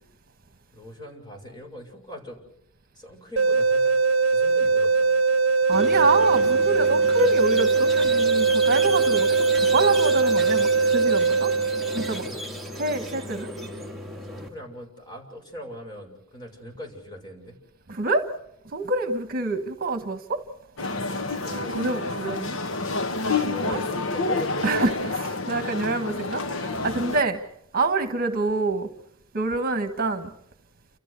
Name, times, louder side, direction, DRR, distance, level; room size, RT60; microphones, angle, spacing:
voice 1, 0.7-2.4 2.9-4.0 4.2-5.1 12.1-12.6 13.3-13.4 14.3-17.6 21.1-22.4 23.2-25.2 27.1-27.2, equal, 20° left, 1 dB, 6.7 m, -41 dB
sound 1, 3.4-12.3, right 4 dB, 70° right, 0.9 m, -21 dB
Squeak, 5.7-14.5, right 1 dB, ahead, 2.7 m, -35 dB
voice 2, 5.7-11.5 11.9-12.3 12.8-13.5 17.9-18.3 18.7-20.4 21.8-22.6 23.2-23.8 24.6-27.4 27.7-28.9 29.3-30.3, right 3 dB, 45° right, 8 dB, 1.5 m, -26 dB
sound 2, 20.8-27.2, left 3 dB, 75° left, 1.3 m, -28 dB
29.5 x 14.5 x 8.3 m, 0.75 s
head